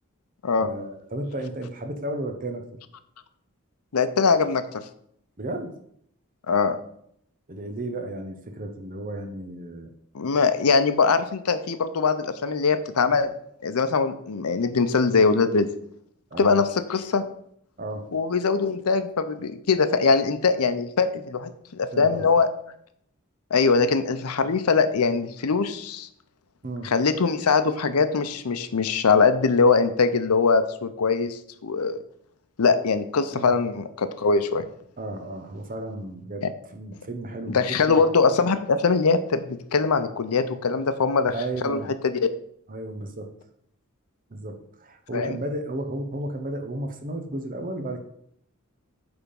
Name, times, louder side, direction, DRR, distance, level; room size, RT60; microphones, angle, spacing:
voice 1, 0.6-2.6 5.4-5.8 7.5-9.9 16.3-16.7 17.8-18.1 21.9-22.3 26.6-26.9 33.3-33.6 35.0-38.0 41.3-41.9 42.7-43.3 44.3-48.0, right 1 dB, 40° right, 6 dB, 0.9 m, -33 dB
voice 2, 3.9-4.8 6.5-6.8 10.1-13.3 13.6-15.7 16.4-17.2 18.1-22.5 23.5-26.1 26.8-32.0 32.6-34.6 36.4-36.5 37.5-41.3 41.6-42.1 45.1-45.3, left 4 dB, 90° left, 11 dB, 0.6 m, -22 dB
8.6 x 3.6 x 5.3 m, 0.69 s
head